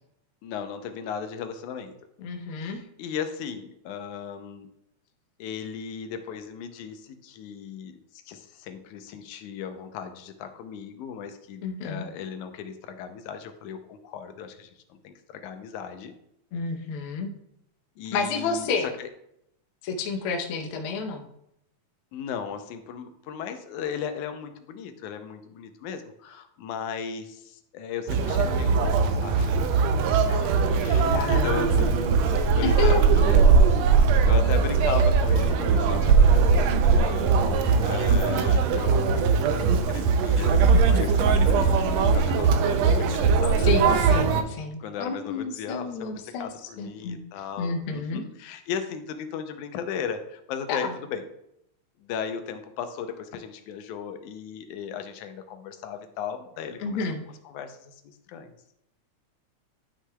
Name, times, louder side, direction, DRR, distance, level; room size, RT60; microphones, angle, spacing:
voice 1, 0.4-2.0 2.6-4.7 5.4-16.1 18.0-19.1 22.1-29.6 30.8-32.0 32.5-33.7 34.2-43.7 44.8-51.3 52.0-57.0 57.5-58.6, left 7 dB, 85° left, 8 dB, 2.1 m, -36 dB
voice 2, 2.2-2.8 11.6-12.0 16.5-17.3 18.1-18.9 19.8-21.2 30.3-30.5 31.1-31.7 32.6-33.0 43.6-46.5 46.8-47.2 47.6-48.2 50.7-50.8 56.8-57.2, left 4 dB, 65° left, 3 dB, 1.4 m, -30 dB
Conversation, 28.1-44.4, right 5 dB, 80° right, 1.6 m, -20 dB
11.5 x 6.0 x 2.3 m, 0.79 s
omnidirectional pair, 3.4 m